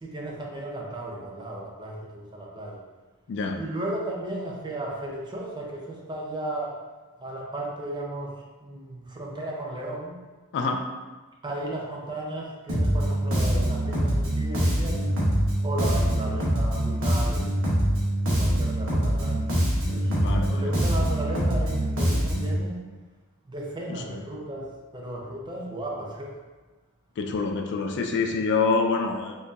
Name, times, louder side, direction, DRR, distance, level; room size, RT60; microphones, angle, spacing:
voice 1, 0.0-2.8 3.6-6.8 7.2-10.2 11.4-15.1 15.6-17.8 18.4-19.5 19.9-20.2 20.5-22.8 23.5-26.4, right 1 dB, 20° right, -2 dB, 0.5 m, -35 dB
voice 2, 3.3-3.6 10.5-10.8 20.1-20.7 23.9-24.2 27.2-29.4, left 4 dB, 55° left, 4 dB, 0.3 m, -26 dB
Bass guitar, 12.7-22.6, right 1 dB, 65° right, 1.0 m, -24 dB
4.3 x 2.7 x 2.5 m, 1.3 s
head